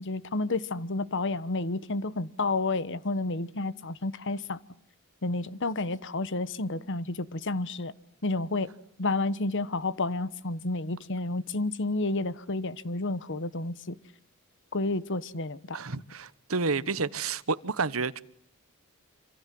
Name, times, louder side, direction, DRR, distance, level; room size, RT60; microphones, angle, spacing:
voice 1, 0.0-4.6 5.2-7.9 8.2-8.7 9.0-14.0 14.7-15.8, left 2 dB, 55° left, 1.2 m, -30 dB
voice 2, 15.7-18.2, right 4 dB, 70° right, 1.2 m, -30 dB
26.5 x 26.5 x 7.7 m
head